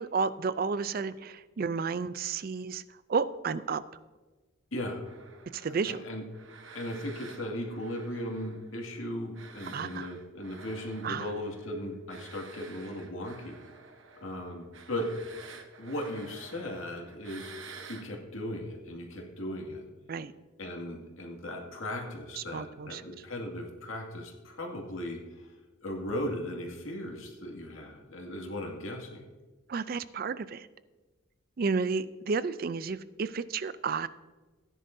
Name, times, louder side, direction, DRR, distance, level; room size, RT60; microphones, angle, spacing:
voice 1, 0.0-2.8 3.1-3.8 5.5-6.0 9.7-10.1 11.0-11.3 20.1-20.3 22.4-23.0 29.7-30.7 31.6-34.1, right 5 dB, 45° right, 15 dB, 0.4 m, -32 dB
voice 2, 4.7-5.0 5.6-6.2 6.7-13.6 14.2-15.1 15.8-17.5 17.9-19.8 20.6-25.5 25.8-29.2, left 1 dB, 85° left, 0 dB, 2.2 m, -37 dB
sound 1, 5.0-9.0 9.3-18.1, right 5 dB, 70° right, 1.1 m, -50 dB
16.0 x 10.0 x 2.7 m, 1.2 s
head